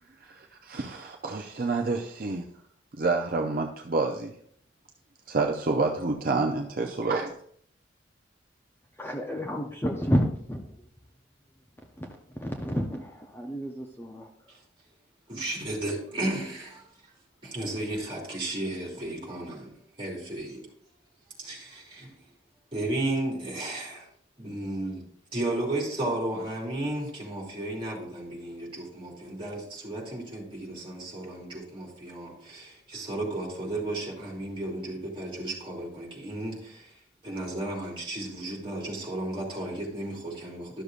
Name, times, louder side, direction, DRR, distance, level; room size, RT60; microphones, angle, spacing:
voice 1, 0.0-2.5 2.9-4.4 5.3-7.4, right 3 dB, 50° right, 0.6 m, -28 dB
voice 2, 9.0-10.6 12.0-14.2, equal, 10° left, 0.6 m, -30 dB
voice 3, 15.3-16.8 17.4-19.7 20.0-20.7 21.4-22.1 22.7-24.1 24.4-25.0 25.3-36.9 37.2-40.8, right 1 dB, 25° right, 2.7 m, -34 dB
12.5 x 6.6 x 2.5 m
head